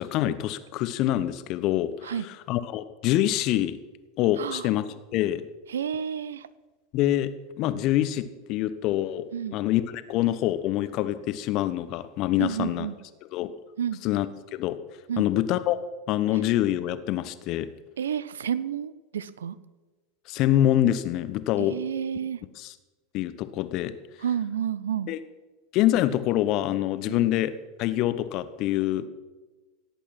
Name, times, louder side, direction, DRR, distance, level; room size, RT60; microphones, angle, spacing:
voice 1, 0.0-2.1 2.5-3.8 4.2-4.8 5.1-5.4 6.9-7.3 7.6-12.9 13.3-13.5 14.0-14.3 14.5-14.8 15.2-15.8 16.1-17.7 20.3-21.7 22.6-22.7 23.1-23.9 25.1-25.2 25.7-27.5 27.8-29.1, left 13 dB, 50° left, 13 dB, 0.9 m, -25 dB
voice 2, 4.4-4.7 5.7-6.5 9.3-9.6 12.4-12.9 13.8-14.0 15.1-15.3 18.0-19.6 21.6-22.4 24.2-25.1 27.1-27.3, right 8 dB, 75° right, 18 dB, 0.6 m, -30 dB
17.0 x 8.3 x 5.8 m, 1.2 s
figure-of-eight pair, 85°, 0 cm